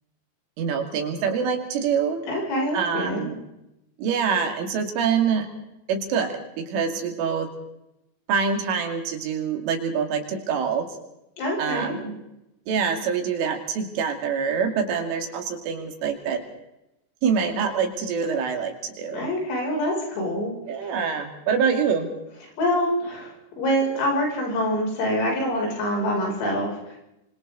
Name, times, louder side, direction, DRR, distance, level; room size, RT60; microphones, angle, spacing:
voice 1, 0.6-2.2 2.7-3.4 4.0-5.5 5.9-7.5 8.3-10.9 11.6-12.2 12.7-16.4 17.2-19.3 20.7-22.1, right 6 dB, 70° right, 3 dB, 5.0 m, -25 dB
voice 2, 2.3-3.3 11.4-12.0 19.1-20.5 22.6-23.3 23.6-26.7, equal, 75° left, -1 dB, 9.9 m, -25 dB
27.0 x 24.5 x 4.1 m, 0.89 s
omnidirectional pair, 6.0 m